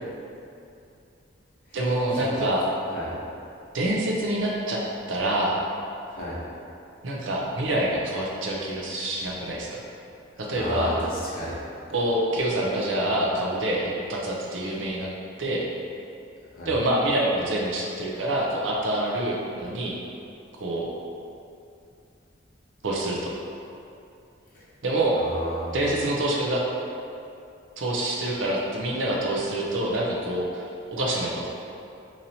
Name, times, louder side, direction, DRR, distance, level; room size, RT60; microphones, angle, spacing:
voice 1, 1.7-2.6 3.7-4.8 5.1-5.6 7.0-9.8 10.4-11.0 11.9-15.1 15.4-15.7 16.7-20.0 20.6-20.9 22.8-23.3 24.8-25.2 25.7-26.6 27.8-31.5, right 1 dB, 75° right, -3 dB, 0.6 m, -26 dB
voice 2, 6.1-6.4 10.5-11.6 16.5-16.7 24.5-24.6 25.2-25.8, equal, 45° left, -7 dB, 0.8 m, -33 dB
4.1 x 2.9 x 2.7 m, 2.6 s
head